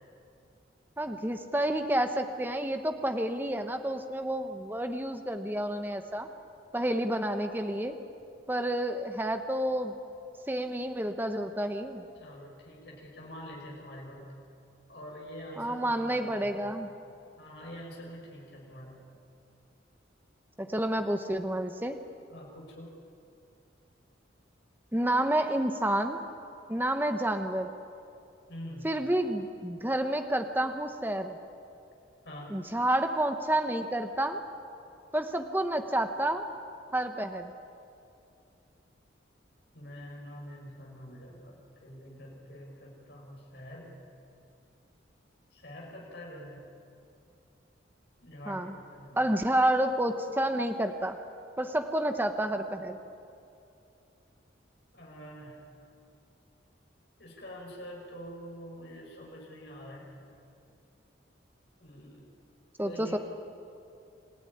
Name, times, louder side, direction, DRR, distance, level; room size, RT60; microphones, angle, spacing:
voice 1, 1.0-6.3 6.7-7.9 8.5-9.9 10.5-12.1 15.6-16.9 20.6-22.0 24.9-26.2 26.7-27.7 28.8-31.4 32.5-34.4 35.1-36.4 36.9-37.5 48.5-48.8 49.2-51.2 51.6-53.0 62.8-63.2, right 1 dB, 10° right, 7 dB, 1.0 m, -29 dB
voice 2, 12.1-14.3 14.9-16.7 17.4-19.0 22.3-23.0 28.5-28.9 32.2-32.5 39.7-43.9 45.5-46.6 48.2-49.2 54.9-55.6 57.2-60.1 61.8-62.3 62.8-63.2, equal, 60° left, -3 dB, 6.0 m, -45 dB
27.5 x 16.5 x 9.7 m, 2.6 s
head